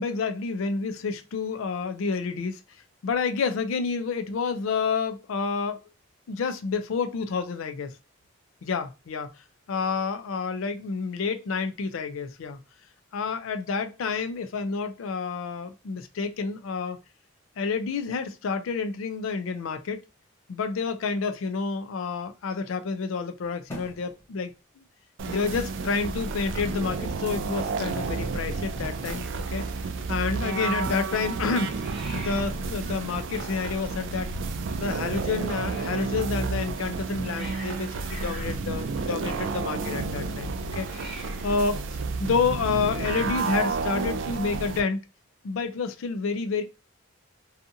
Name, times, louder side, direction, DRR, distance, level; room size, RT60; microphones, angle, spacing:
voice 1, 0.0-2.6 3.0-5.8 6.3-7.9 8.6-9.3 9.7-12.6 13.1-17.0 17.6-20.0 20.5-24.8 25.3-29.6 30.1-31.8 32.1-34.3 34.8-41.8 42.2-45.0 45.4-46.6, left 5 dB, 80° left, 0.4 m, -29 dB
sound 1, 23.7-24.4 25.4-26.3 27.3-28.0 28.6-29.4 29.8-30.0 30.9-31.6 32.0-32.6 33.3-33.8 34.2-34.5 35.0-35.8, equal, 15° left, 0.5 m, -44 dB
sound 2, 25.2-44.8, right 4 dB, 65° right, 0.3 m, -31 dB
Hiss, 31.3-42.8, equal, ahead, 0.9 m, -50 dB
2.6 x 2.4 x 2.6 m
head